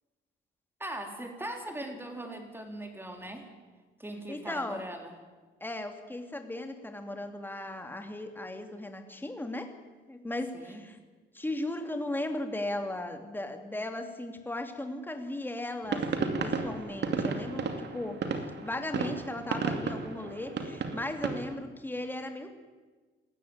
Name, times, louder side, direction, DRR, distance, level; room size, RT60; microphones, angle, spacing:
voice 1, 0.8-3.5 4.0-5.1 10.5-10.8, right 1 dB, 10° right, 4 dB, 3.9 m, -40 dB
voice 2, 4.3-4.8 5.6-9.7 10.1-11.0 11.3-18.2 18.6-22.6, left 1 dB, 10° left, 6 dB, 2.5 m, -37 dB
sound 1, 15.8-21.5, right 5 dB, 60° right, 2.5 m, -33 dB
19.5 x 14.0 x 9.6 m, 1.3 s
cardioid pair, 90°, 20 cm